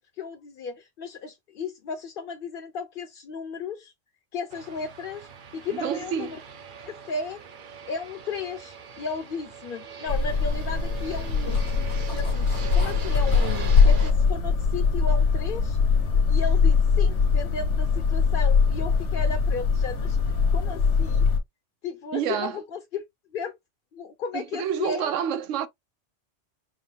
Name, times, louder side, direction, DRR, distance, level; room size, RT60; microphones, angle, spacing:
voice 1, 0.2-3.9 4.3-6.4 6.9-7.4 7.9-11.6 12.1-15.8 16.3-20.2 20.5-21.3 21.8-23.0 23.3-23.6 23.9-25.1, left 5 dB, 55° left, 0.8 m, -34 dB
Fixed-wing aircraft airplane, 4.5-14.1, right 6 dB, 50° right, 0.8 m, -41 dB
voice 2, 5.7-6.4 22.1-22.6 24.3-25.7, right 9 dB, 80° right, 1.0 m, -28 dB
sound 1, 10.1-21.4, left 5 dB, 70° left, 1.2 m, -22 dB
5.2 x 2.4 x 3.3 m
omnidirectional pair, 1.3 m